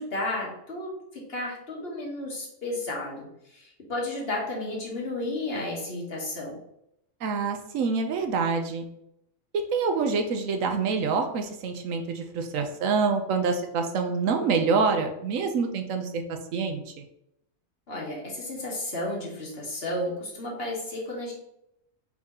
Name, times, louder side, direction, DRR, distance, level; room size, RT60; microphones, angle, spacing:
voice 1, 0.0-6.6 17.9-21.3, left 1 dB, 50° left, -3 dB, 1.3 m, -33 dB
voice 2, 7.2-8.8 9.5-17.0, right 5 dB, 80° right, 5 dB, 1.0 m, -26 dB
4.5 x 2.8 x 3.7 m, 0.78 s
omnidirectional pair, 1.4 m